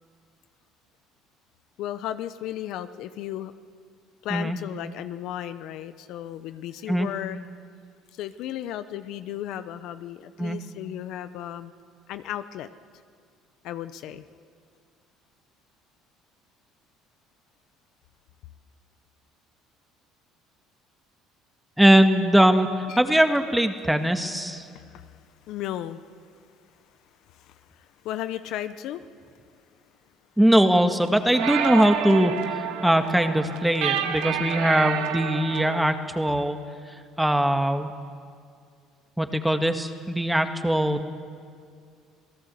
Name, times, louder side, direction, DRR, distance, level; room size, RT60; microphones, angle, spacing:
voice 1, 1.8-3.5 4.2-7.4 8.1-11.7 12.1-12.7 13.6-14.2 22.9-23.0 24.6-25.2 25.4-26.3 27.3-29.0, left 12 dB, 70° left, 12 dB, 0.9 m, -35 dB
voice 2, 21.8-24.7 30.4-36.6 36.9-37.9 39.2-41.1, right 1 dB, 5° right, 7 dB, 1.9 m, -21 dB
sound 1, 30.8-35.8, right 9 dB, 80° right, 1.7 m, -29 dB
27.5 x 17.5 x 7.8 m, 2.2 s
supercardioid pair, 85°, 0 cm